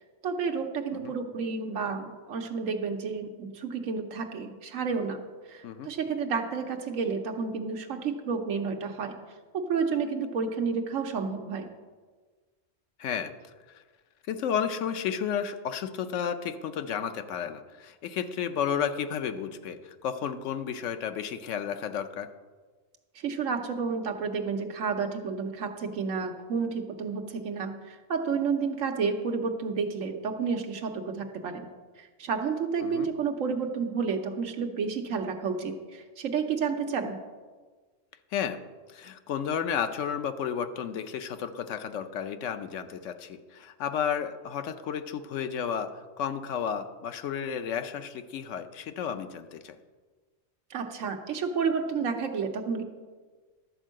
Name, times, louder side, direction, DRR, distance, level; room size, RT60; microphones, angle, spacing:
voice 1, 0.2-5.2 5.5-9.2 9.5-11.7 23.1-31.7 32.0-37.2 50.7-52.8, right 5 dB, 90° right, 3 dB, 1.2 m, -30 dB
voice 2, 13.0-13.3 13.7-13.8 14.3-22.3 32.8-33.1 38.3-38.6 38.9-49.8, left 8 dB, 75° left, 9 dB, 1.0 m, -32 dB
11.5 x 4.5 x 7.5 m, 1.4 s
omnidirectional pair, 1.3 m